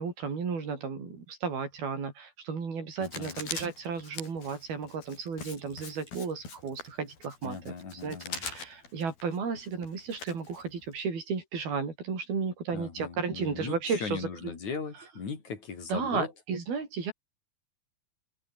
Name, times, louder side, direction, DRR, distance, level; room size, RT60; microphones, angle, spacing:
voice 1, 0.0-7.7 8.0-14.3 15.9-17.1, right 5 dB, 70° right, 7.1 m, -34 dB
Writing, 3.0-11.0, left 4 dB, 65° left, 8.6 m, -43 dB
voice 2, 3.0-3.4 7.4-8.4 12.7-16.3, left 5 dB, 50° left, 4.9 m, -38 dB
omnidirectional pair, 4.5 m